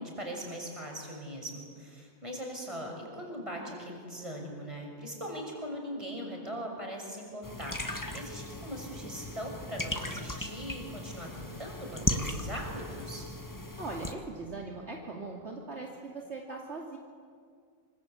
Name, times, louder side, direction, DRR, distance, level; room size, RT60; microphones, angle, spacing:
voice 1, 0.0-13.3, equal, 25° right, 1 dB, 6.5 m, -40 dB
sound 1, 7.4-14.1, left 1 dB, 15° left, 1.5 m, -37 dB
voice 2, 13.8-17.0, right 3 dB, 55° right, -1 dB, 2.9 m, -40 dB
27.0 x 26.0 x 8.4 m, 2.1 s
omnidirectional pair, 1.4 m